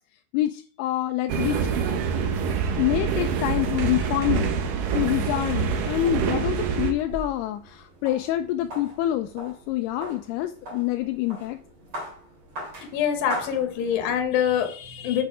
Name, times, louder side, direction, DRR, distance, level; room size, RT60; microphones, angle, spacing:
voice 1, 0.3-1.7 2.8-4.5 4.9-11.6, left 14 dB, 85° left, 7 dB, 2.4 m, -26 dB
sound 1, 1.3-6.9, right 6 dB, 65° right, 2.4 m, -26 dB
sound 2, 6.7-14.2, equal, 40° right, 3.7 m, -40 dB
voice 2, 12.9-15.2, left 9 dB, 65° left, 5 dB, 2.9 m, -25 dB
7.7 x 7.1 x 4.8 m, 0.43 s
omnidirectional pair, 4.9 m